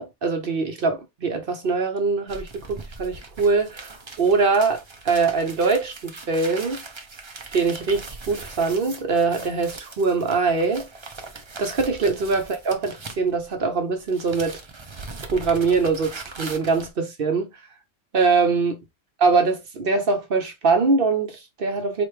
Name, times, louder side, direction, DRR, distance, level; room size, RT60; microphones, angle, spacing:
voice 1, 0.0-6.8 7.5-10.8 11.6-14.6 15.3-17.5 18.1-18.8 19.2-22.0, right 4 dB, 55° right, 0.9 m, -23 dB
sound 1, 2.3-13.7 14.0-16.9, right 3 dB, 30° right, 0.5 m, -40 dB
4.5 x 2.6 x 3.3 m
omnidirectional pair, 1.2 m